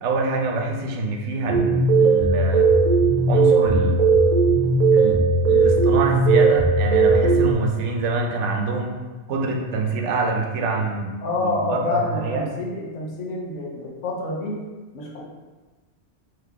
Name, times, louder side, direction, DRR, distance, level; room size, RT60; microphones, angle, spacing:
voice 1, 0.0-2.7 3.3-4.0 4.9-9.0 9.3-12.5, right 3 dB, 85° right, 2 dB, 0.9 m, -26 dB
sound 1, 1.5-7.5, right 4 dB, 40° right, 0.7 m, -17 dB
voice 2, 11.2-14.6 14.9-15.2, left 2 dB, 85° left, -2 dB, 1.1 m, -27 dB
3.8 x 2.9 x 3.4 m, 1.3 s
omnidirectional pair, 1.2 m